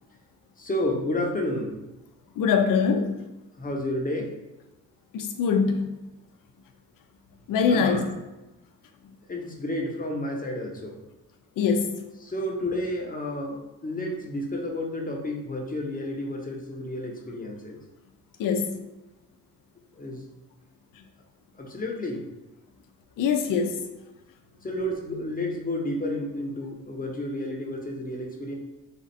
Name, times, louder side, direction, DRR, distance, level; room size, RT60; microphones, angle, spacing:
voice 1, 0.6-1.8 3.6-4.3 7.7-8.0 9.3-11.0 12.2-17.8 20.0-20.2 21.6-22.2 24.6-28.5, left 1 dB, 25° left, 0 dB, 0.9 m, -31 dB
voice 2, 2.4-3.2 5.1-5.9 7.5-8.1 11.6-12.0 18.4-18.8 23.2-23.9, left 6 dB, 80° left, 5 dB, 0.7 m, -23 dB
4.3 x 2.5 x 4.1 m, 1.0 s
cardioid pair, 90°, 32 cm